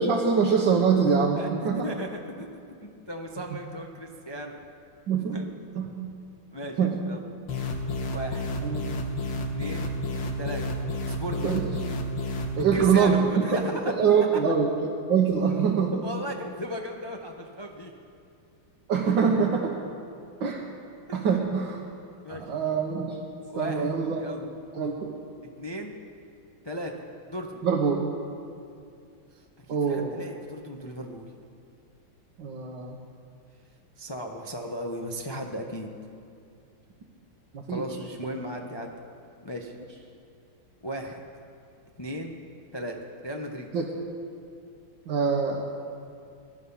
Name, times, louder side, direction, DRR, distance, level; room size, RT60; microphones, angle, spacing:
voice 1, 0.0-1.9 5.1-5.4 5.8-6.1 6.8-7.0 8.6-8.9 11.4-11.6 12.6-13.3 13.9-14.7 15.1-16.0 18.9-19.7 20.4-20.6 21.1-21.8 22.3-23.2 23.5-24.2 24.7-25.1 27.6-28.0 29.7-30.2 32.4-33.0 37.5-37.8 43.7-43.9 45.1-45.6, right 6 dB, 65° right, -2 dB, 1.9 m, -24 dB
voice 2, 1.4-2.1 2.4-2.6 3.1-4.5 5.3-5.4 6.5-7.2 8.1-8.5 9.5-9.9 10.4-10.6 11.1-11.5 12.6-13.9 16.0-17.9 21.1-21.4 22.2-22.4 23.5-23.9 24.2-24.5 25.6-26.0 26.6-26.9 27.2-27.6 29.3-31.3 34.0-35.9 37.7-38.9 39.4-39.7 40.8-41.2 42.0-42.4 42.7-43.0 43.2-43.7, equal, 25° left, 1 dB, 0.6 m, -36 dB
sound 1, 7.5-12.6, left 1 dB, 65° left, 2.0 m, -31 dB
21.5 x 12.0 x 5.6 m, 2.5 s
omnidirectional pair, 2.3 m